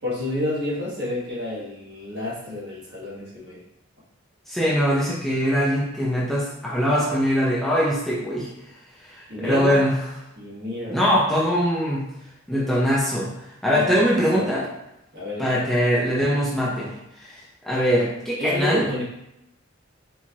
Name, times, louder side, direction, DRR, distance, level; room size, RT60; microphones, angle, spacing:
voice 1, 0.0-3.6 9.3-9.8 10.4-11.0 13.7-14.6 15.1-15.7 18.4-19.0, left 1 dB, 55° right, -7 dB, 1.4 m, -30 dB
voice 2, 4.5-8.5 9.0-9.9 10.9-12.1 12.5-13.3 13.6-14.7 15.4-16.9 17.2-18.9, equal, ahead, -7 dB, 0.6 m, -22 dB
4.4 x 2.5 x 2.9 m, 0.84 s
head